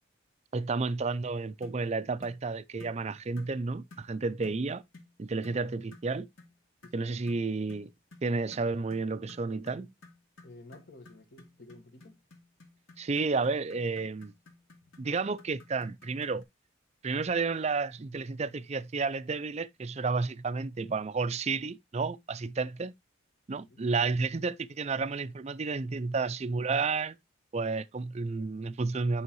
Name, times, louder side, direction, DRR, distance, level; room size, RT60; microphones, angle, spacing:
voice 1, 0.5-4.8 5.2-6.3 6.9-7.9 8.2-9.9 13.0-14.3 15.0-16.4 17.0-22.9 23.5-27.2 27.5-29.2, right 4 dB, 30° right, 0.4 m, -31 dB
sound 1, 1.6-1.8 2.2-2.4 2.8-3.0 3.4-3.6 3.9-4.1 4.4-4.6 4.9-5.1 5.4-5.6 5.9-6.1 6.4-6.5 6.8-16.4, left 2 dB, 70° left, 2.0 m, -54 dB
voice 2, 6.8-7.2 10.4-12.2 23.5-23.8, left 2 dB, 55° left, 1.5 m, -52 dB
9.5 x 5.6 x 3.0 m
head